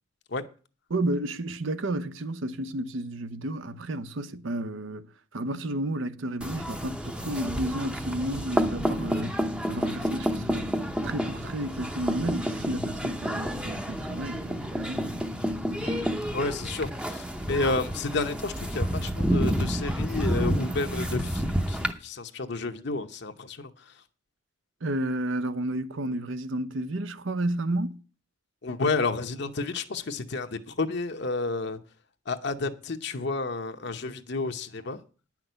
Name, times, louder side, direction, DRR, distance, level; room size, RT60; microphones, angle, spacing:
voice 1, 0.9-5.1 5.3-9.4 9.7-10.7 11.0-15.2 24.8-28.0, right 1 dB, 70° right, 0.8 m, -32 dB
sound 1, 6.4-21.9, equal, 5° right, 0.7 m, -29 dB
voice 2, 15.8-23.9 28.6-31.8 32.3-35.0, left 3 dB, 55° left, 0.9 m, -31 dB
10.0 x 6.0 x 8.0 m
head